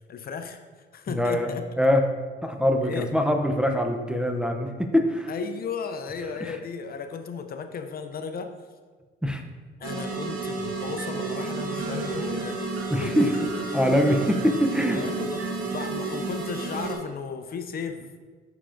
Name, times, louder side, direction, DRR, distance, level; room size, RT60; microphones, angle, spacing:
voice 1, 0.1-1.7 2.8-3.1 5.3-8.7 9.8-12.6 13.0-13.5 14.9-18.1, left 5 dB, 50° left, 7 dB, 0.5 m, -35 dB
voice 2, 1.1-1.5 1.8-2.0 2.4-5.3 9.2-9.4 12.9-13.3 13.7-15.0, equal, 5° right, 3 dB, 0.5 m, -23 dB
sound 1, 9.8-17.0, right 3 dB, 85° right, 0.9 m, -31 dB
7.0 x 5.7 x 2.5 m, 1.5 s
cardioid pair, 90°, 20 cm